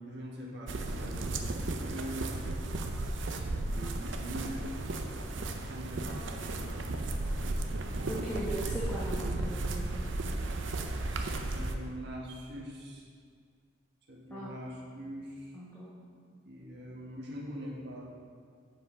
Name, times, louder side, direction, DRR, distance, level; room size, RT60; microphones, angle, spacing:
voice 1, 0.0-2.5 3.1-5.0 5.6-7.1 11.1-13.0 14.1-15.6 16.4-18.0, equal, 65° right, -4 dB, 1.6 m, -43 dB
sound 1, 0.7-11.7, right 2 dB, 85° right, 0.6 m, -34 dB
voice 2, 8.1-10.1 14.3-14.5 15.5-16.1, right 1 dB, 10° left, -8 dB, 1.1 m, -39 dB
7.7 x 5.8 x 5.1 m, 2.1 s
head